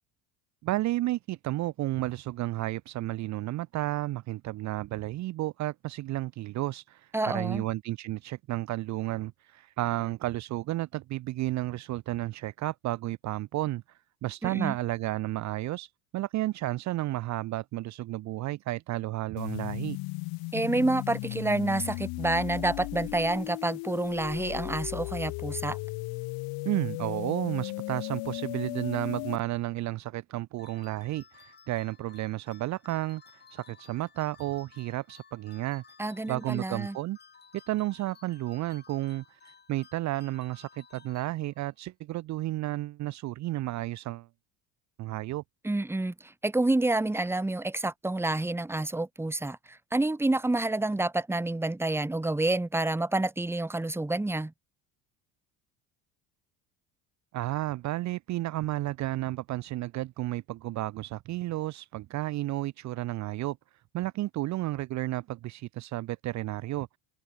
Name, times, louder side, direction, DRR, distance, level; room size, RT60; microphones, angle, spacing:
voice 1, 0.6-13.8 14.2-20.0 26.6-35.8 36.3-37.2 37.5-44.3 45.0-45.4 57.3-63.6 63.9-66.9, right 16 dB, 50° right, 0.7 m, -32 dB
voice 2, 7.1-7.6 14.4-14.7 20.5-25.8 36.0-37.0 45.6-54.5, right 2 dB, 5° right, 1.4 m, -28 dB
sound 1, 19.4-29.4, left 25 dB, 75° left, 1.6 m, -36 dB
sound 2, 30.6-41.8, left 6 dB, 25° left, 4.7 m, -57 dB
supercardioid pair, 110°, 37 cm